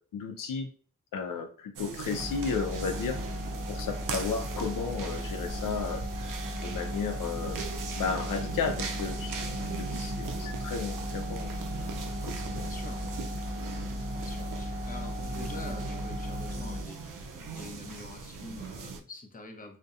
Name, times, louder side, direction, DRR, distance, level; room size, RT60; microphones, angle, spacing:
voice 1, 0.1-0.7 1.1-3.2 3.7-6.0 6.6-7.6 8.0-9.5 9.8-11.5 12.2-12.6, left 5 dB, 80° left, 5 dB, 0.5 m, -34 dB
sound 1, 1.8-19.0, right 4 dB, 75° right, 0.5 m, -39 dB
sound 2, 2.2-16.8, left 1 dB, 30° right, 0.7 m, -36 dB
voice 2, 12.5-13.1 14.2-19.8, left 2 dB, 25° left, 3 dB, 0.6 m, -46 dB
2.6 x 2.1 x 2.4 m, 0.43 s
cardioid pair, 55°, 33 cm